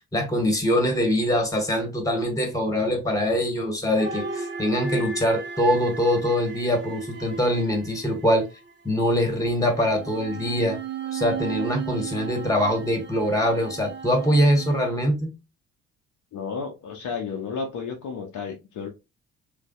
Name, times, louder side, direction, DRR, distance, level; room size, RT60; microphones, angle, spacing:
voice 1, 0.1-8.5 8.8-10.8 11.1-15.3, equal, 10° left, 1.3 m, -23 dB
sound 1, 4.0-8.7 9.6-14.9, right 5 dB, 30° right, 0.7 m, -35 dB
voice 2, 16.3-18.9, left 5 dB, 50° left, 0.7 m, -32 dB
3.2 x 2.5 x 2.3 m
figure-of-eight pair, 45°, 39 cm